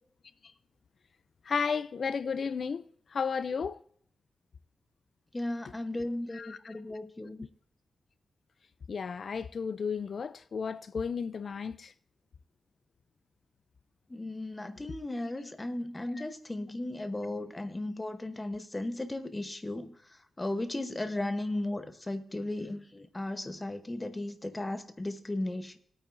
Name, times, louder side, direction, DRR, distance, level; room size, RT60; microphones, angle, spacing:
voice 1, 1.5-3.8 6.3-7.0 8.9-11.9 16.2-16.3, left 5 dB, 50° left, 0.3 m, -33 dB
voice 2, 5.3-7.4 14.1-19.9 20.4-25.8, left 1 dB, 15° left, 0.9 m, -35 dB
20.0 x 8.9 x 2.5 m
wide cardioid pair, 160°, 0 cm